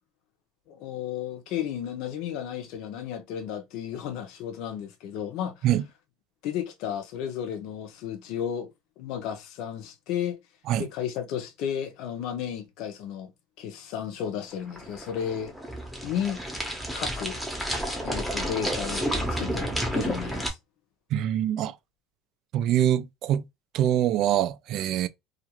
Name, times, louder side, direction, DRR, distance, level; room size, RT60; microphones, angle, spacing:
voice 1, 0.7-5.7 6.4-8.7 9.0-10.4 10.8-13.3 13.6-15.5 16.0-16.4 16.9-17.4 18.0-20.6, left 9 dB, 60° left, 0.7 m, -33 dB
sound 1, 14.5-20.5, equal, ahead, 0.8 m, -31 dB
voice 2, 21.1-21.7 22.5-23.4 23.7-25.1, right 11 dB, 50° right, 0.3 m, -24 dB
2.4 x 2.4 x 2.9 m
cardioid pair, 140°, 0 cm